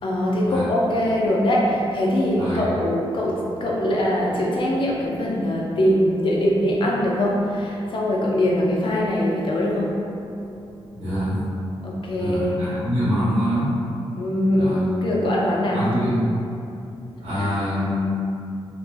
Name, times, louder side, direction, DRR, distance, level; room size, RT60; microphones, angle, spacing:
voice 1, 0.0-10.2 11.8-12.6 14.1-15.9 17.4-17.5, left 1 dB, 55° left, -4 dB, 0.5 m, -22 dB
voice 2, 2.3-2.8 10.9-11.4 12.2-13.7 14.6-14.8 15.7-16.4 17.2-18.2, equal, 85° right, -13 dB, 1.2 m, -24 dB
2.5 x 2.1 x 3.3 m, 2.6 s
wide cardioid pair, 120°, 10 cm